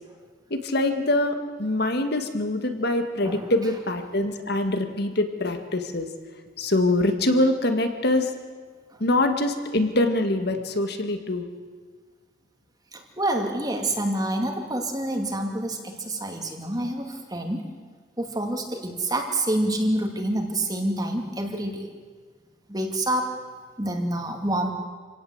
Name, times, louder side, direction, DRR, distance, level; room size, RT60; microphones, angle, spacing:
voice 1, 0.5-6.1 6.6-8.3 9.0-11.5, left 1 dB, 50° left, 7 dB, 1.9 m, -24 dB
voice 2, 12.9-17.7 18.2-21.9 22.7-23.3 23.8-24.7, right 1 dB, 20° right, 3 dB, 2.3 m, -27 dB
27.5 x 17.5 x 8.0 m, 1.6 s
head